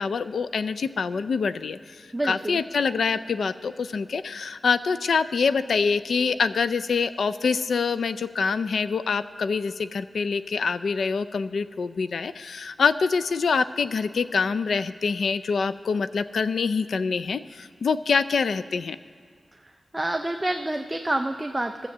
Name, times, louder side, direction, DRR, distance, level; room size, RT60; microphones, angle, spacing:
voice 1, 0.0-19.0, left 5 dB, 80° left, 12 dB, 0.4 m, -25 dB
voice 2, 2.1-2.6 19.5-21.9, right 1 dB, 15° right, 5 dB, 0.4 m, -28 dB
15.5 x 6.9 x 7.3 m, 2.1 s
wide cardioid pair, 125°, 0 cm